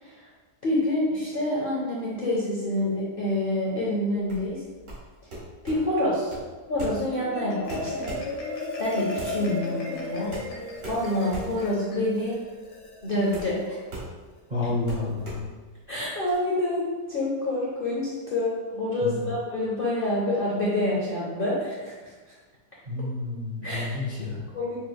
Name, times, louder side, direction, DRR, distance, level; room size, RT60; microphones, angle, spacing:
voice 1, 0.6-4.6 5.6-6.3 6.7-8.2 8.8-10.3 10.8-12.4 13.0-13.8 14.6-14.7 15.9-22.1 23.6-24.0 24.5-24.8, left 1 dB, 50° left, -6 dB, 0.7 m, -27 dB
sound 1, 4.2-16.4, right 1 dB, 85° right, 2.1 m, -41 dB
Marimba xylophone, 7.1-13.7, left 2 dB, 85° left, 1.4 m, -35 dB
voice 2, 14.5-15.5 19.0-19.3 22.9-24.5, left 2 dB, 40° right, -8 dB, 0.7 m, -30 dB
5.5 x 3.2 x 2.2 m, 1.3 s
omnidirectional pair, 1.8 m